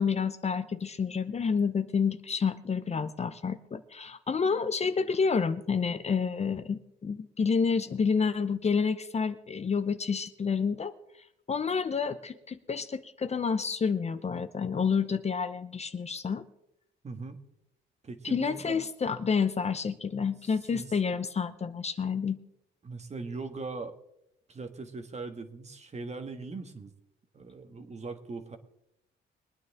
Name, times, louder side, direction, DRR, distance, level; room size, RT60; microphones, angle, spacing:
voice 1, 0.0-10.9 11.5-16.4 18.2-22.4, left 5 dB, 35° left, 11 dB, 0.7 m, -29 dB
voice 2, 17.0-17.4 18.0-18.8 20.7-20.9 22.8-24.0 24.5-26.9 27.3-28.6, right 3 dB, 35° right, 7 dB, 1.5 m, -40 dB
22.0 x 9.3 x 3.6 m, 0.81 s
cardioid pair, 90°, 20 cm